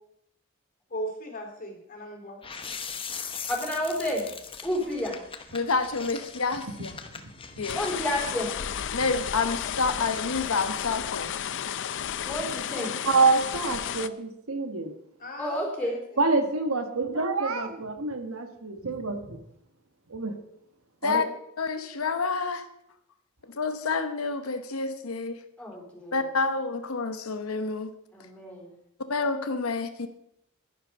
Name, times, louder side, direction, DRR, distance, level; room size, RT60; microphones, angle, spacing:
voice 1, 0.9-2.4 15.2-16.2, equal, 40° left, 3 dB, 2.8 m, -38 dB
sound 1, 2.4-8.2, left 6 dB, 25° left, 0.9 m, -40 dB
voice 2, 3.5-4.2 4.6-5.2 7.7-8.5 12.2-13.0 15.4-16.0 25.6-26.2 28.1-28.7, left 1 dB, 5° left, -2 dB, 4.3 m, -30 dB
voice 3, 5.5-6.9 7.6-7.8 8.9-11.4 21.0-21.2 21.6-22.6 23.5-25.4 26.1-27.9 29.1-30.1, left 4 dB, 85° left, 8 dB, 1.0 m, -28 dB
sound 2, 7.7-14.1, left 9 dB, 60° left, 0.5 m, -33 dB
voice 4, 13.0-14.9 16.2-19.4 20.1-20.4 21.0-21.2, right 3 dB, 80° right, 7 dB, 1.5 m, -26 dB
11.0 x 11.0 x 5.3 m, 0.76 s
head